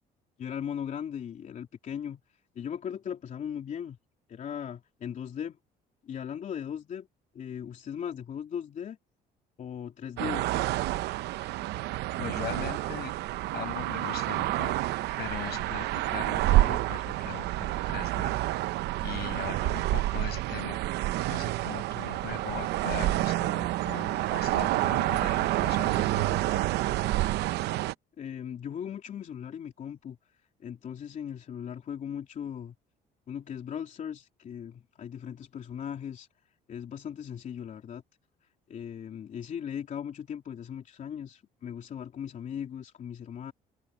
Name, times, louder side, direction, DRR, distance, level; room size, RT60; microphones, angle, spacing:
voice 1, 0.4-2.2 2.5-4.0 4.3-5.6 6.0-7.1 7.3-9.0 9.6-10.5 28.2-30.2 30.6-32.7 33.3-36.3 36.7-38.0 38.7-43.5, left 8 dB, 50° left, 3.2 m, -38 dB
sound 1, 10.2-27.9, right 16 dB, 80° right, 0.7 m, -28 dB
voice 2, 12.2-13.1 13.5-14.7 15.2-18.3 19.0-20.8 21.3-26.6, left 14 dB, 75° left, 7.4 m, -40 dB
cardioid pair, 110°, 17 cm